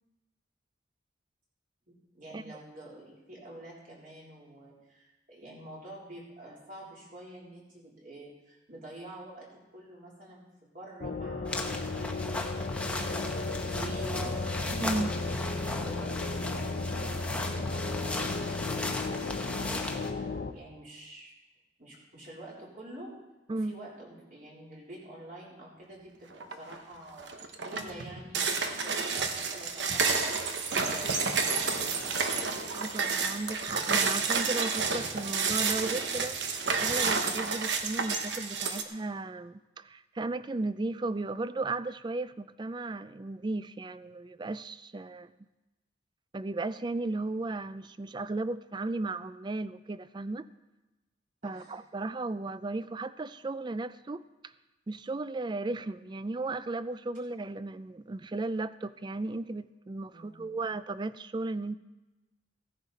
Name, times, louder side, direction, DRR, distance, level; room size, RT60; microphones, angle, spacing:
voice 1, 1.9-10.4 10.7-11.8 12.3-15.4 15.8-17.1 17.4-21.3 21.8-23.1 23.5-27.3 27.6-30.3 30.7-32.1 51.4-51.7 60.1-60.5, right 1 dB, 45° right, -5 dB, 3.7 m, -48 dB
sound 1, 11.0-20.5, left 3 dB, 50° left, 0.7 m, -34 dB
sound 2, 11.5-20.1, left 2 dB, 5° left, 0.9 m, -37 dB
voice 2, 14.7-15.1 23.5-23.7 32.7-45.3 46.3-50.5 51.4-54.2 54.9-61.8, right 2 dB, 25° right, 15 dB, 0.3 m, -35 dB
sound 3, 26.4-26.8 27.2-38.8, right 5 dB, 70° right, 1.1 m, -30 dB
16.0 x 10.5 x 4.1 m, 1.1 s
head